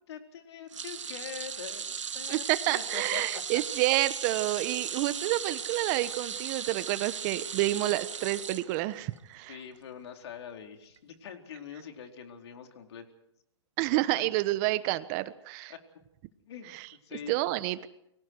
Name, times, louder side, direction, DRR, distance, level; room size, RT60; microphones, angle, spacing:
voice 1, 0.1-1.9 2.1-2.4 2.7-3.6 9.5-13.1 15.7-15.8 16.5-17.4, left 7 dB, 60° left, 4 dB, 4.3 m, -43 dB
sound 1, 0.7-9.2 9.5-9.8 11.0-11.1, right 7 dB, 85° right, 1.7 m, -37 dB
voice 2, 2.3-9.6 13.8-15.7 16.7-16.9 17.3-17.9, right 18 dB, 35° right, 14 dB, 1.2 m, -29 dB
29.5 x 24.5 x 4.7 m, 0.76 s
hypercardioid pair, 135°, 15 cm